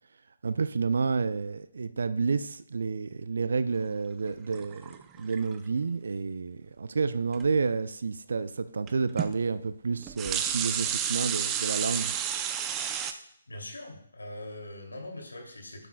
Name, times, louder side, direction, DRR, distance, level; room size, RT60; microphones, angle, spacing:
voice 1, 0.4-12.1, right 4 dB, 65° right, 13 dB, 0.5 m, -30 dB
sound 1, 4.5-5.6 7.3-7.5 8.9-9.0 9.2-9.3 10.0-13.1, right 9 dB, 20° right, 0.6 m, -31 dB
voice 2, 13.5-15.9, left 1 dB, 80° left, 1 dB, 2.9 m, -42 dB
11.5 x 9.1 x 2.3 m, 0.75 s
figure-of-eight pair, 140°, 0 cm